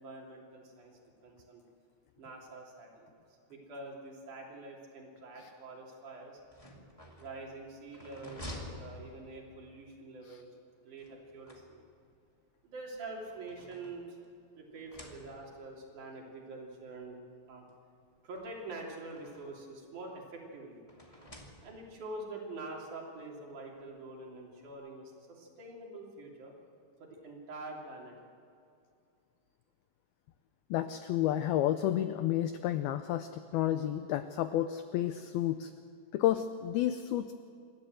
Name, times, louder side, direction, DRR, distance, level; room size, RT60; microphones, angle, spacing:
voice 1, 0.0-1.6 2.2-3.1 3.5-6.4 7.2-10.5 10.9-11.8 12.6-14.2 14.6-17.2 17.5-17.7 18.2-20.9 21.6-26.6 27.0-28.2, right 2 dB, 45° right, -1 dB, 4.1 m, -46 dB
sound 1, 6.4-9.7 11.0-12.1 13.0-14.4 14.7-15.7 16.6-16.7 17.0-17.1 18.3-19.7 20.9-22.0, left 1 dB, 25° left, 0.7 m, -50 dB
voice 2, 30.7-35.7 36.1-37.3, left 12 dB, 85° left, 10 dB, 2.2 m, -31 dB
28.0 x 12.5 x 7.7 m, 2.5 s
omnidirectional pair, 5.2 m